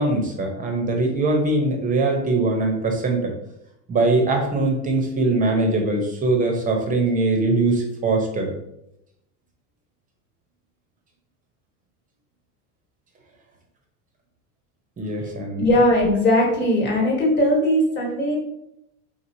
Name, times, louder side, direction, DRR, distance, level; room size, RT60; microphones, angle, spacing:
voice 1, 0.0-3.3 3.9-8.5 15.0-15.6, right 2 dB, 20° right, 2 dB, 0.7 m, -22 dB
voice 2, 15.6-18.4, left 1 dB, 25° left, -1 dB, 1.3 m, -19 dB
4.5 x 3.7 x 2.7 m, 0.81 s
cardioid pair, 155°, 39 cm